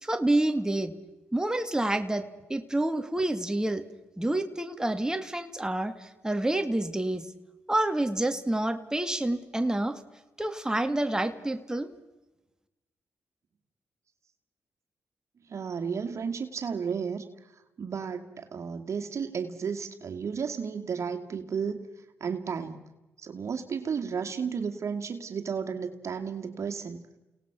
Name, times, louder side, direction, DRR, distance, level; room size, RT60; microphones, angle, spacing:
voice 1, 0.0-0.9 1.3-3.8 4.2-7.3 7.7-10.0 10.4-11.9, right 1 dB, 10° right, 7 dB, 2.2 m, -28 dB
voice 2, 15.5-17.3 17.8-21.9 22.2-22.8 23.2-27.0, right 6 dB, 60° right, 6 dB, 2.3 m, -33 dB
29.5 x 18.5 x 6.1 m, 1.0 s
supercardioid pair, 55°, 6 cm